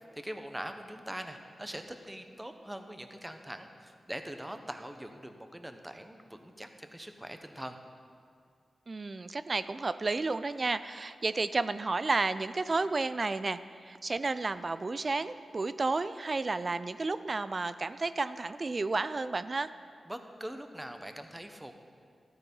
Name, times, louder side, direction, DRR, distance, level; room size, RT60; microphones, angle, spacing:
voice 1, 0.1-7.8 20.1-21.7, right 1 dB, 15° right, 7 dB, 1.1 m, -42 dB
voice 2, 8.9-19.7, right 3 dB, 45° right, 13 dB, 0.4 m, -32 dB
12.5 x 9.6 x 5.6 m, 2.2 s
cardioid pair, 45°, 0 cm